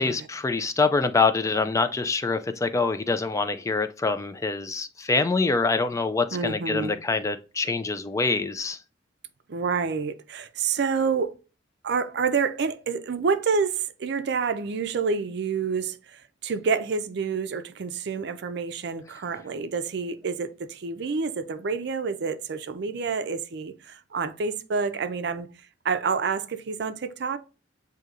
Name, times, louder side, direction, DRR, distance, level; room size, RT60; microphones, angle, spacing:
voice 1, 0.0-8.8, left 4 dB, 15° left, 0.3 m, -25 dB
voice 2, 6.3-6.9 9.5-11.3 11.8-25.5 25.8-27.4, right 5 dB, 65° right, 0.5 m, -28 dB
7.7 x 2.7 x 2.4 m
head